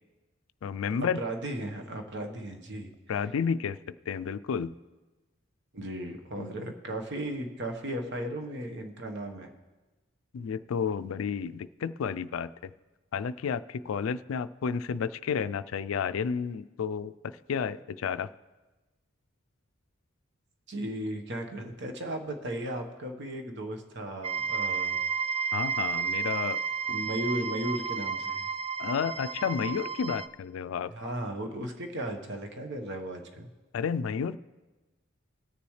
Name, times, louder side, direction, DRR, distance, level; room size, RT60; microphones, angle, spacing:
voice 1, 0.6-1.2 3.1-4.8 6.4-6.5 10.3-12.7 13.1-18.3 25.5-26.6 28.8-30.9 33.7-34.4, left 6 dB, 75° left, 15 dB, 0.4 m, -31 dB
voice 2, 1.2-2.9 5.7-9.5 20.7-25.0 26.9-28.5 30.9-33.5, right 1 dB, 60° right, 4 dB, 1.2 m, -36 dB
sound 1, 24.2-30.3, right 6 dB, 30° right, 0.4 m, -32 dB
19.5 x 6.9 x 3.2 m, 1.2 s
head